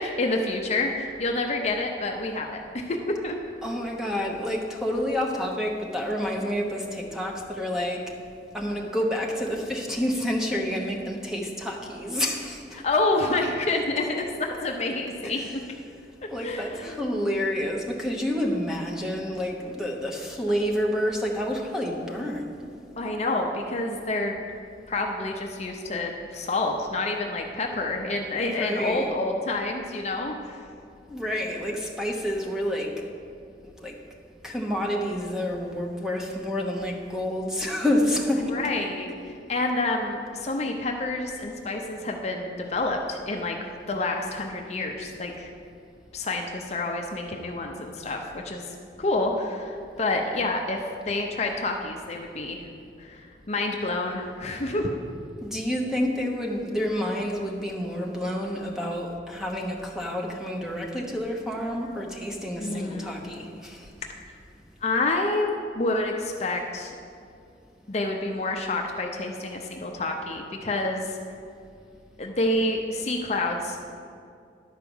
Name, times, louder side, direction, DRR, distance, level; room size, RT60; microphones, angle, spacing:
voice 1, 0.0-3.3 12.7-15.4 16.4-17.0 23.0-24.4 24.9-30.6 38.5-39.1 39.5-45.5 46.1-50.8 51.1-52.6 53.0-55.0 62.6-63.2 64.8-65.5 65.7-67.0 67.9-71.2 72.2-73.9, left 2 dB, 35° left, 2 dB, 0.6 m, -28 dB
voice 2, 3.6-8.1 8.5-12.8 15.2-15.6 16.3-22.5 28.4-29.1 31.1-33.0 33.8-33.9 34.4-38.7 55.4-63.9, equal, 5° right, -1 dB, 0.9 m, -29 dB
11.0 x 4.7 x 7.0 m, 2.4 s
head